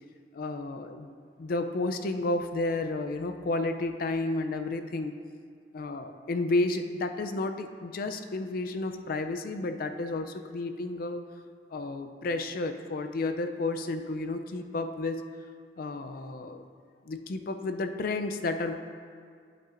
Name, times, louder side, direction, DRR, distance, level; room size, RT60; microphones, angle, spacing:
voice 1, 0.3-1.1 1.4-5.1 5.7-11.2 11.7-15.3 15.8-16.6 17.1-18.8, left 2 dB, 55° left, 7 dB, 0.4 m, -31 dB
8.5 x 8.3 x 2.5 m, 2.1 s
head